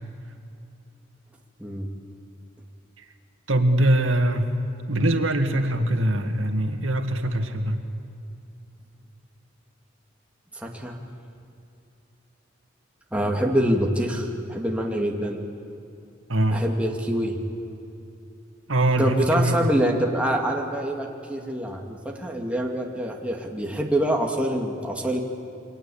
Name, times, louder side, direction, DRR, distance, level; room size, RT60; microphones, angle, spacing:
voice 1, 3.5-4.5 4.9-7.8 16.3-16.6 18.7-19.7, right 1 dB, 85° right, 6 dB, 2.0 m, -22 dB
voice 2, 10.5-11.0 13.1-15.4 16.5-17.4 19.0-25.2, right 1 dB, 5° right, 0 dB, 2.4 m, -25 dB
29.0 x 23.5 x 8.7 m, 2.7 s
head